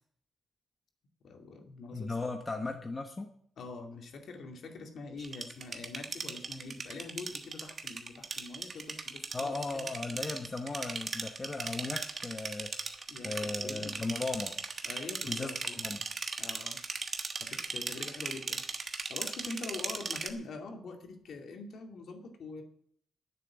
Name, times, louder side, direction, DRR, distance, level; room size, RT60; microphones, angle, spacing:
voice 1, 1.2-2.1 3.6-9.9 13.1-14.0 14.8-15.8 16.4-16.8 17.4-18.6 19.1-22.6, left 3 dB, 60° left, 3 dB, 2.4 m, -44 dB
voice 2, 1.9-3.3 9.3-12.9 13.2-14.6 15.3-15.6 15.8-16.0, left 3 dB, 20° left, 3 dB, 1.1 m, -37 dB
sound 1, 5.2-20.3, right 4 dB, 35° right, 1.2 m, -38 dB
10.0 x 7.5 x 9.6 m, 0.64 s
wide cardioid pair, 160°, 0 cm